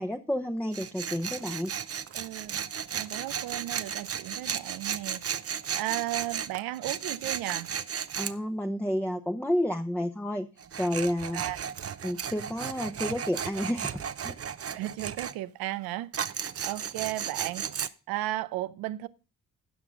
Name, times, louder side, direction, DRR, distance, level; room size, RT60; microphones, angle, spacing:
voice 1, 0.0-1.7 8.2-10.5 10.8-11.4 12.0-14.4, equal, 5° left, 0.9 m, -30 dB
Tools, 0.7-8.3 10.6-15.3 16.1-17.9, right 8 dB, 40° right, 0.7 m, -35 dB
voice 2, 2.1-2.7 2.9-5.3 5.7-7.8 11.3-11.6 14.6-16.3 16.6-19.1, right 16 dB, 90° right, 0.6 m, -35 dB
16.0 x 5.9 x 3.7 m
supercardioid pair, 60°, 35 cm